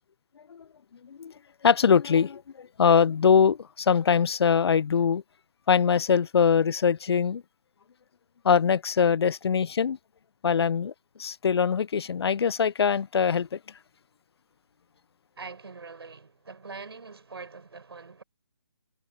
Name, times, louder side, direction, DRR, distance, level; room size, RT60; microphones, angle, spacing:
voice 1, 1.0-1.3 1.6-5.2 5.7-7.4 8.4-10.0 10.4-10.9 11.2-13.6, left 6 dB, 85° left, 0.4 m, -22 dB
voice 2, 15.4-18.2, right 4 dB, 80° right, 5.7 m, -43 dB
hypercardioid pair, 165°, 13 cm